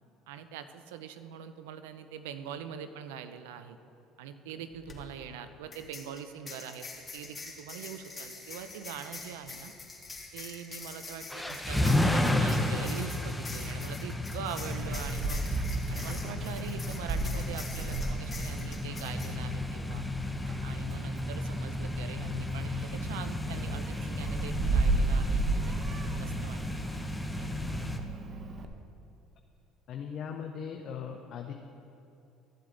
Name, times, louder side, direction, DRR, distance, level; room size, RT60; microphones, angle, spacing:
voice 1, 0.3-3.8 4.2-6.9 7.1-9.7 10.3-15.4 15.9-20.0 20.6-25.8 26.2-27.0 27.4-27.7, right 8 dB, 85° right, 10 dB, 0.5 m, -43 dB
sound 1, 4.7-4.9 5.7-19.3, left 3 dB, 25° left, 2.0 m, -45 dB
sound 2, 11.3-28.0, left 1 dB, 5° left, 0.9 m, -33 dB
Meow, 14.7-28.6, right 3 dB, 45° right, 0.9 m, -35 dB
voice 2, 29.9-31.5, left 7 dB, 60° left, 3 dB, 0.7 m, -39 dB
14.0 x 7.7 x 3.9 m, 2.7 s
supercardioid pair, 75°, 0 cm